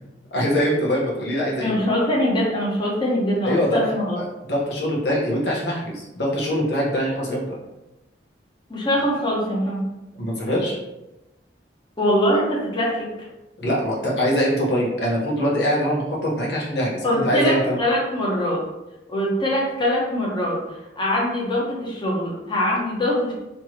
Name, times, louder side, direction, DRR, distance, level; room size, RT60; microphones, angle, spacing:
voice 1, 0.3-1.8 3.4-7.6 10.2-10.8 13.6-17.8, equal, 70° left, -4 dB, 1.3 m, -23 dB
voice 2, 1.6-4.2 8.7-9.8 12.0-13.1 17.0-18.6 19.1-20.6 21.0-23.3, left 1 dB, 25° left, -4 dB, 1.2 m, -22 dB
3.4 x 3.0 x 4.4 m, 1.0 s
head